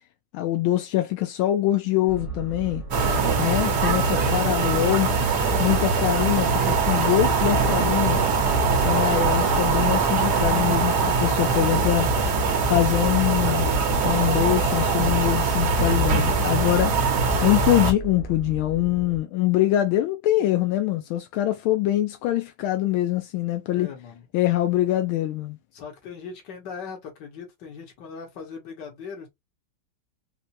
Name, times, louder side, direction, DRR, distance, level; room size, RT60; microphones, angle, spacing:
voice 1, 0.3-2.8 3.4-5.1 5.6-8.2 8.8-12.1 12.7-13.7 14.0-16.9 17.4-23.9 24.3-25.6, left 14 dB, 85° left, 1.4 m, -24 dB
sound 1, 2.1-19.2, right 2 dB, 35° left, 0.5 m, -36 dB
voice 2, 2.9-5.2 9.0-9.5 23.7-24.3 25.7-29.3, left 6 dB, 60° left, 1.8 m, -40 dB
sound 2, 2.9-17.9, right 4 dB, 60° right, 1.3 m, -22 dB
4.4 x 2.1 x 2.6 m
omnidirectional pair, 2.2 m